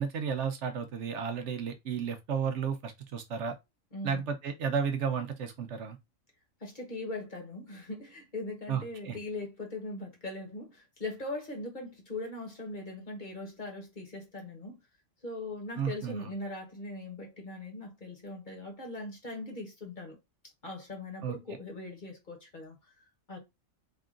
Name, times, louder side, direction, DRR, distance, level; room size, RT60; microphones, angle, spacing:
voice 1, 0.0-3.5 4.0-6.0 8.7-9.2 15.8-16.3 21.2-21.4, right 6 dB, 70° right, 0.9 m, -33 dB
voice 2, 3.9-4.2 6.6-14.8 15.2-20.2 20.6-23.4, left 2 dB, 40° left, 1.2 m, -40 dB
3.6 x 2.4 x 3.7 m
omnidirectional pair, 1.4 m